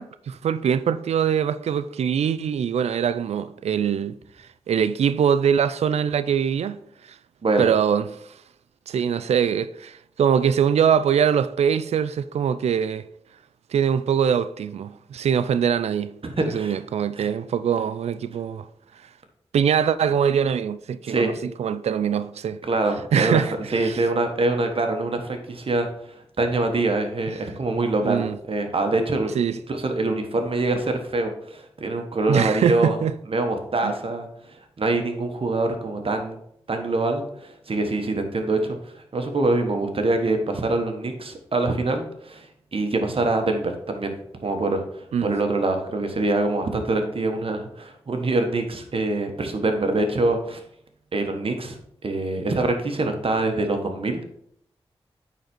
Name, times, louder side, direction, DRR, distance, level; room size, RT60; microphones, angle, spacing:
voice 1, 0.0-4.2 4.7-6.8 7.6-8.2 8.9-13.0 13.7-16.2 16.5-18.7 19.5-22.6 23.1-24.0 28.0-28.4 29.3-29.6 32.3-33.1 33.8-33.9 45.1-45.4, right 8 dB, 85° right, 0.4 m, -23 dB
voice 2, 16.2-16.8 17.1-17.3 21.1-21.3 22.6-23.4 23.7-29.3 29.7-33.0 33.3-36.4 36.7-42.5 42.7-44.1 44.4-50.6 51.1-51.8 52.0-54.4, right 2 dB, 60° right, 1.3 m, -25 dB
9.1 x 4.1 x 4.4 m
cardioid pair, 45°, 11 cm